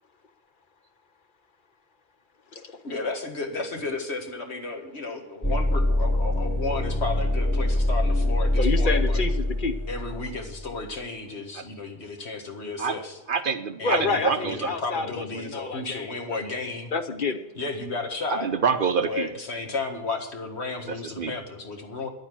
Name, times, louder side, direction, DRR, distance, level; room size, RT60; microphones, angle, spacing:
voice 1, 2.8-9.2 9.9-13.2 13.8-16.9 17.6-18.5 19.0-22.1, left 3 dB, 65° left, 4 dB, 2.0 m, -33 dB
sound 1, 5.4-10.9, left 1 dB, 15° left, 1.3 m, -24 dB
voice 2, 8.6-9.8 13.8-16.1 16.4-16.5 16.9-17.4, left 4 dB, 50° left, 8 dB, 1.0 m, -29 dB
voice 3, 13.3-14.7 18.3-19.3 20.9-21.3, right 6 dB, 55° right, 10 dB, 0.8 m, -26 dB
10.5 x 8.8 x 7.6 m, 1.0 s
omnidirectional pair, 1.2 m